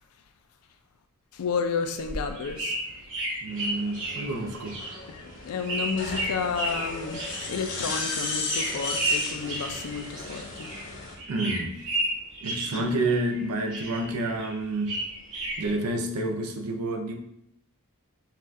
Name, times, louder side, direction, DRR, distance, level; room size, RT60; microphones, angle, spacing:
voice 1, 1.3-2.8 5.1-10.7 12.7-12.9, left 5 dB, 80° left, 6 dB, 0.4 m, -31 dB
sound 1, 1.8-10.9 11.2-13.4 13.7-15.7, right 1 dB, 65° right, 1.1 m, -33 dB
voice 2, 3.4-4.8 11.3-11.8 12.4-15.0 15.6-17.2, right 2 dB, 85° right, 5 dB, 0.5 m, -29 dB
sound 2, 3.5-11.1, left 3 dB, 60° left, 0.8 m, -35 dB
4.0 x 2.4 x 2.6 m, 0.76 s
head